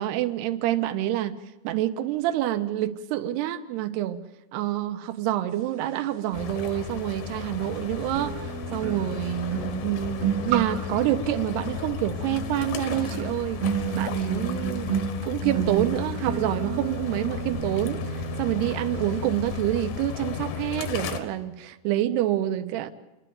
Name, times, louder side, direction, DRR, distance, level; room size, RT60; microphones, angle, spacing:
voice 1, 0.0-1.4 1.6-4.2 4.5-9.6 9.8-13.6 13.9-14.9 15.2-18.0 18.4-22.9, right 13 dB, 80° right, 10 dB, 2.8 m, -27 dB
sound 1, 6.3-21.2, left 10 dB, 70° left, 3.0 m, -35 dB
sound 2, 6.8-6.9 8.1-19.2 19.5-19.8, right 7 dB, 55° right, 1.7 m, -32 dB
28.5 x 11.5 x 9.3 m, 1.1 s
omnidirectional pair, 4.8 m